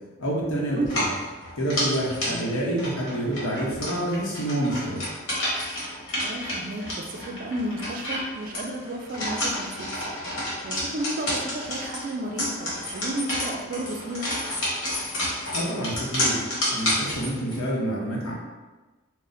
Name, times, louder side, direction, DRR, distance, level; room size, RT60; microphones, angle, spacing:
voice 1, 0.2-1.1 1.6-5.0 15.5-16.4 16.7-18.3, right 1 dB, 80° left, -3 dB, 0.8 m, -27 dB
sound 1, 0.8-17.6, left 1 dB, 60° left, 1.2 m, -30 dB
voice 2, 6.2-14.3, right 1 dB, 40° right, 2 dB, 0.4 m, -33 dB
4.0 x 2.1 x 2.5 m, 1.2 s
head